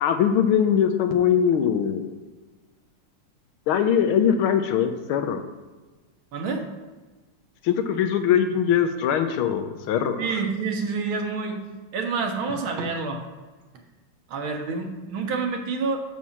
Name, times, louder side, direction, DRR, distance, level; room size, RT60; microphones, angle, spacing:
voice 1, 0.0-2.0 3.7-5.4 7.6-10.2, left 8 dB, 80° left, 8 dB, 1.5 m, -21 dB
voice 2, 6.3-6.6 10.2-11.6 11.9-13.2 14.3-16.0, right 4 dB, 70° right, 3 dB, 1.9 m, -28 dB
6.2 x 5.6 x 7.2 m, 1.3 s
omnidirectional pair, 2.3 m